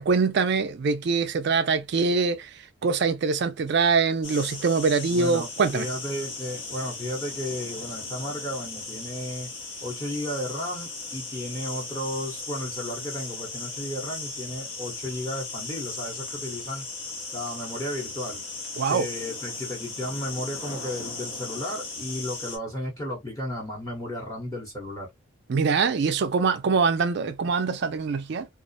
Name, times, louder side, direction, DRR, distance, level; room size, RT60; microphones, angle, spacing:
voice 1, 0.0-2.5 2.8-5.9 18.8-19.1 25.5-28.5, right 5 dB, 50° right, 0.3 m, -23 dB
sound 1, 4.2-22.6, left 3 dB, 60° left, 0.8 m, -37 dB
voice 2, 5.1-9.5 9.8-16.8 17.3-18.4 18.9-25.1 26.1-26.2, left 1 dB, 15° left, 0.8 m, -34 dB
2.4 x 2.0 x 2.6 m
head